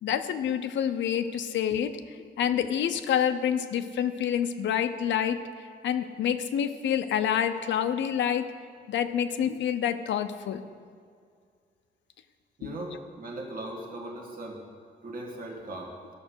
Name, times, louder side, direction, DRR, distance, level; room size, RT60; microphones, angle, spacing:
voice 1, 0.0-5.4 5.8-8.5 8.9-10.6 12.6-12.7, left 9 dB, 80° left, 9 dB, 0.6 m, -27 dB
voice 2, 12.6-14.6 15.0-16.0, right 1 dB, 50° right, -1 dB, 2.0 m, -38 dB
14.0 x 6.2 x 6.2 m, 2.1 s
wide cardioid pair, 150°, 19 cm